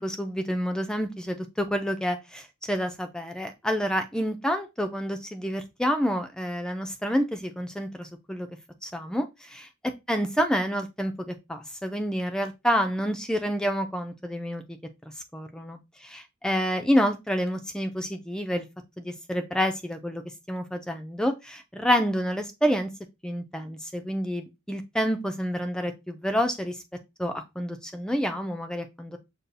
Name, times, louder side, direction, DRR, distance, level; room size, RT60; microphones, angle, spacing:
voice 1, 0.0-8.5 8.8-9.7 10.1-14.6 15.3-18.6 19.0-20.2 20.5-22.9 23.2-26.8 27.2-29.2, equal, 5° left, 0.3 m, -28 dB
6.5 x 2.3 x 2.6 m
head